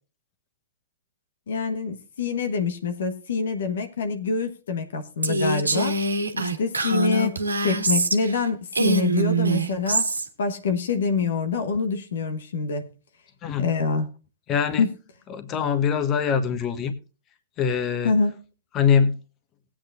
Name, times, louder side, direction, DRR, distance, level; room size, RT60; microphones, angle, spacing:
voice 1, 1.5-6.0 6.3-10.1 10.4-12.9 13.6-14.1 14.8-14.9 18.0-18.4, left 4 dB, 70° left, 1.2 m, -25 dB
Female speech woman speaking, 5.2-8.4 8.7-10.3, right 3 dB, 90° right, 1.4 m, -24 dB
voice 2, 14.5-14.8 15.3-16.9 17.6-18.1 18.7-19.1, left 7 dB, 30° left, 1.4 m, -23 dB
19.0 x 8.8 x 2.6 m
hypercardioid pair, 110°, 0 cm